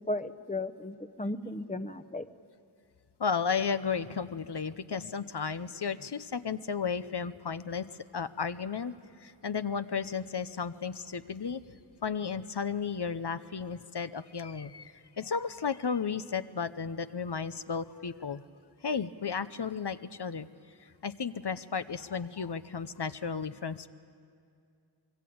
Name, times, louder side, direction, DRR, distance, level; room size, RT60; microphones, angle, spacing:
voice 1, 0.0-2.3, left 2 dB, 15° left, 11 dB, 0.9 m, -35 dB
voice 2, 3.2-7.9 8.1-8.9 9.2-11.6 12.0-18.4 18.8-20.5 20.8-23.9, left 6 dB, 65° left, 12 dB, 0.8 m, -34 dB
25.0 x 22.5 x 8.7 m, 2.4 s
wide cardioid pair, 45°, 44 cm